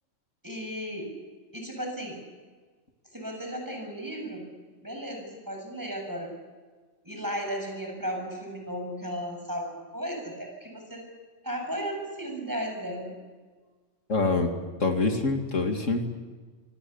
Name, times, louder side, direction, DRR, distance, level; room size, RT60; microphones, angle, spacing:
voice 1, 0.4-1.1 1.5-2.2 3.1-4.5 4.8-6.3 7.0-11.0 11.4-13.1, equal, 15° right, 2 dB, 7.2 m, -35 dB
voice 2, 14.1-14.5 14.8-16.1, left 3 dB, 85° left, 4 dB, 2.8 m, -25 dB
26.0 x 25.5 x 7.1 m, 1.4 s
omnidirectional pair, 1.3 m